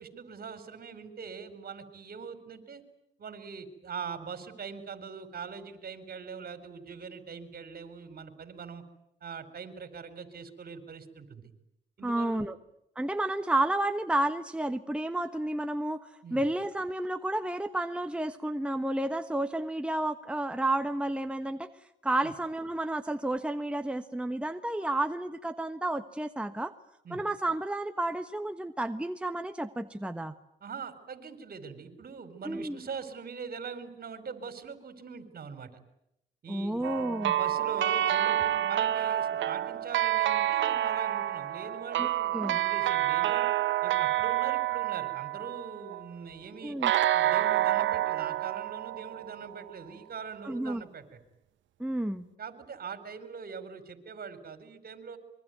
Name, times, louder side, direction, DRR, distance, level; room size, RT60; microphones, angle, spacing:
voice 1, 0.0-2.8 3.2-8.8 9.2-11.5 12.0-12.5 16.2-16.4 22.2-22.3 27.0-27.2 30.6-35.7 36.4-43.5 43.8-46.8 47.1-51.2 52.4-55.2, right 6 dB, 50° right, 10 dB, 4.5 m, -42 dB
voice 2, 12.0-12.5 12.9-16.0 16.3-21.7 22.0-26.7 27.1-30.3 32.4-32.8 36.5-37.4 42.0-42.1 42.3-42.6 46.6-46.9 50.4-50.8 51.8-52.3, right 1 dB, 5° right, 7 dB, 1.2 m, -31 dB
sound 1, 36.8-46.0 46.8-49.7, right 12 dB, 70° right, 1.1 m, -28 dB
25.5 x 23.5 x 9.4 m, 0.81 s
cardioid pair, 90°, 20 cm